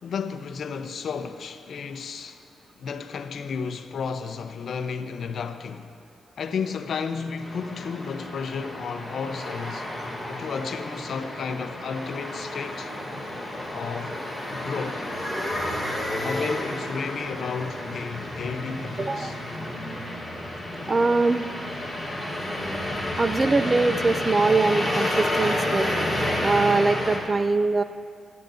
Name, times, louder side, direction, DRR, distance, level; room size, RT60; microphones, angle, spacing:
voice 1, 0.0-2.4 2.8-6.0 6.4-9.9 10.3-12.9 13.7-15.0 16.2-19.4, left 5 dB, 55° left, 0.7 m, -32 dB
sound 1, 7.4-27.2, left 1 dB, ahead, 2.2 m, -30 dB
voice 2, 19.0-19.3 20.9-21.5 23.2-25.9 26.4-27.8, right 3 dB, 25° right, 0.3 m, -22 dB
23.0 x 12.0 x 2.7 m
wide cardioid pair, 145°, 0 cm